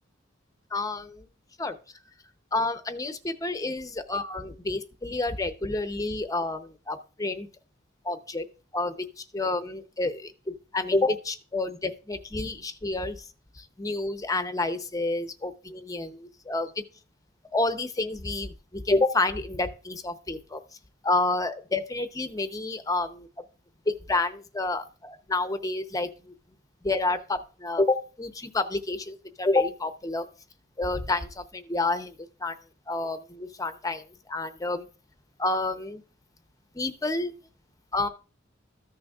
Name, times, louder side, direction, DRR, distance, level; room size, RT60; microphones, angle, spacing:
voice 1, 0.7-1.3 1.6-1.8 2.5-7.5 8.0-8.4 8.7-9.0 9.3-13.2 13.6-16.7 17.5-20.6 21.0-23.3 23.9-26.3 26.8-30.3 30.8-32.1 32.4-32.5 32.9-34.9 35.4-36.0 36.7-37.3 37.9-38.1, left 2 dB, 15° left, 9 dB, 0.6 m, -29 dB
14.0 x 6.2 x 2.4 m, 0.35 s
head